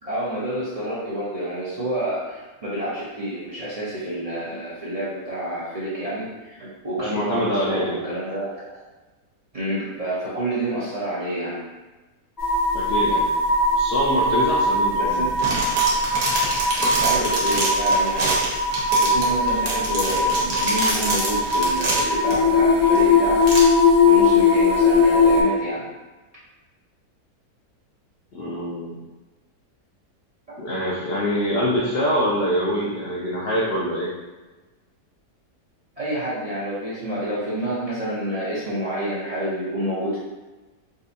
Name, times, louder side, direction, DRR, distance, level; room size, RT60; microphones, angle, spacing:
voice 1, 0.0-8.8 9.5-11.6 15.0-15.3 17.0-18.5 19.0-23.5 24.0-25.9 30.5-30.6 36.0-40.2, right 1 dB, 60° right, -9 dB, 0.3 m, -28 dB
voice 2, 7.0-8.0 12.7-13.3 13.7-15.2 28.3-29.0 30.6-34.1, equal, 70° left, -5 dB, 0.5 m, -24 dB
sound 1, 12.4-25.4, left 3 dB, 25° left, 0.5 m, -20 dB
sound 2, 15.1-22.3 23.0-23.1 23.4-23.6, right 2 dB, 80° right, 1.4 m, -26 dB
3.8 x 2.6 x 2.5 m, 1.2 s
omnidirectional pair, 1.7 m